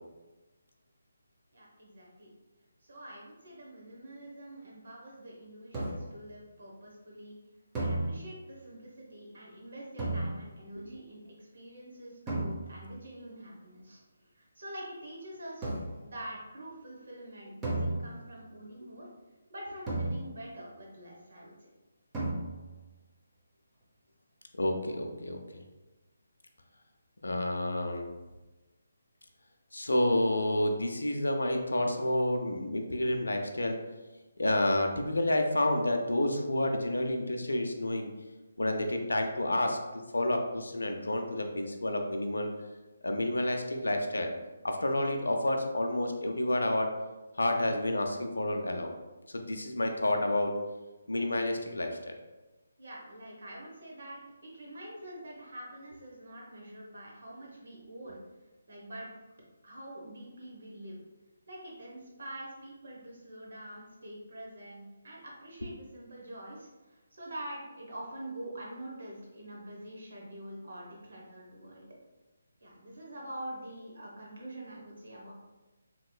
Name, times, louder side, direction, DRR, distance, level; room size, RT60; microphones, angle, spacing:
voice 1, 1.5-2.3 2.8-7.4 7.8-15.7 16.0-19.1 19.5-21.7 52.8-58.2 58.7-59.1 59.6-61.0 61.5-71.9 72.6-75.3, right 1 dB, 65° right, -3 dB, 1.0 m, -45 dB
sound 1, 5.7-6.3 7.7-8.6 10.0-10.8 12.3-13.0 15.6-16.2 17.6-18.5 19.9-20.7 22.1-22.8, right 2 dB, 15° right, 0.7 m, -35 dB
voice 2, 24.6-25.6 27.2-28.1 29.7-33.8 34.4-38.1 38.6-39.8 40.1-42.5 43.0-44.3 44.6-46.9 47.4-48.9 49.3-50.5 51.1-52.1, left 1 dB, 80° left, 4 dB, 0.4 m, -29 dB
3.0 x 2.8 x 2.2 m, 1.1 s
figure-of-eight pair, 150°, 0 cm